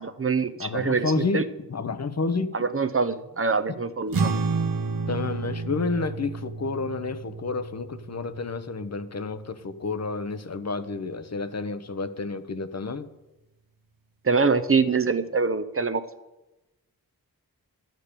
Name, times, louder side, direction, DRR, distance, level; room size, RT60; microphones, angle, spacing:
voice 1, 0.0-1.4 2.5-4.3 14.2-16.0, right 4 dB, 35° right, 10 dB, 0.7 m, -24 dB
voice 2, 0.6-2.5 5.1-13.1, left 3 dB, 45° left, 11 dB, 0.8 m, -30 dB
sound 1, 4.1-10.8, right 4 dB, 65° right, 1.2 m, -31 dB
11.5 x 9.1 x 6.7 m, 1.0 s
wide cardioid pair, 90°, 37 cm